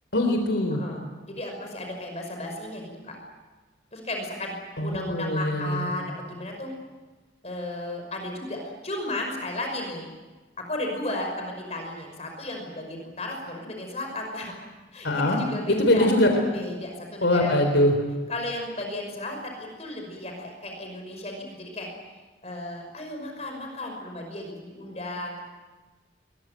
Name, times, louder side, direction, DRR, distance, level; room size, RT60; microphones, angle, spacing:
voice 1, 0.1-0.8 4.8-5.9 15.0-15.4 15.7-16.3 17.2-17.9, left 1 dB, 80° left, 4 dB, 3.6 m, -22 dB
voice 2, 0.7-3.2 3.9-6.7 7.4-10.1 10.7-14.6 14.9-16.1 16.5-17.7 18.3-21.9 22.4-25.4, left 1 dB, 35° left, 2 dB, 5.6 m, -34 dB
23.0 x 21.5 x 9.3 m, 1.3 s
head